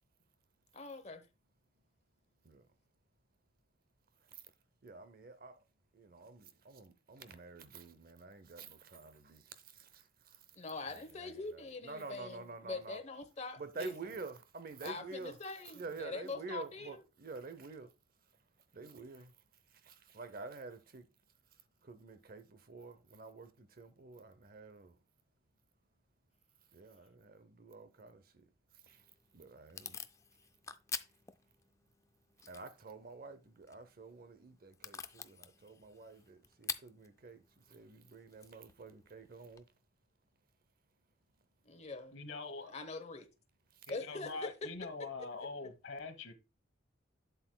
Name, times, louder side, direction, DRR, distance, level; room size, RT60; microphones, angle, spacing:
voice 1, 0.7-1.2 10.5-13.9 14.8-17.0 41.7-42.1 42.7-43.3 43.9-44.7 45.0-45.3, left 3 dB, 35° left, 1.0 m, -43 dB
voice 2, 4.8-5.6 5.9-10.0 10.9-13.0 13.6-15.4 15.7-17.9 18.7-19.3 19.8-21.1 21.8-24.9 26.7-28.4 28.9-29.0 29.3-30.0 32.5-39.6, right 3 dB, 50° right, 0.7 m, -49 dB
Packing tape duct tape / Tearing, 28.8-39.6, left 5 dB, 15° left, 0.4 m, -49 dB
voice 3, 42.1-42.7 43.9-46.3, left 3 dB, 85° left, 1.2 m, -44 dB
8.1 x 7.7 x 2.2 m
head